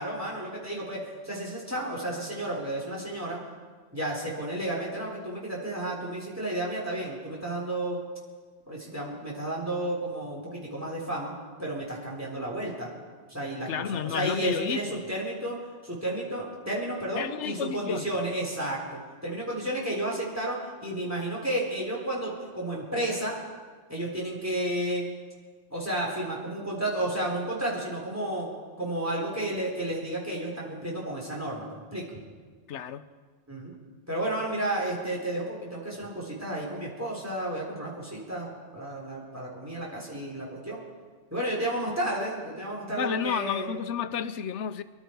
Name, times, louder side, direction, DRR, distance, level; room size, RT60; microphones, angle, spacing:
voice 1, 0.0-3.4 3.9-8.0 8.7-11.3 11.6-12.9 13.3-15.6 15.8-23.4 23.9-25.1 25.7-28.5 28.8-32.2 33.5-33.7 34.1-40.8 41.3-43.7, right 1 dB, 15° right, -3 dB, 3.8 m, -32 dB
voice 2, 13.6-15.0 17.2-18.1 32.7-33.1 42.9-44.8, left 8 dB, 75° left, 13 dB, 1.0 m, -31 dB
25.0 x 12.0 x 4.6 m, 1.5 s
omnidirectional pair, 1.2 m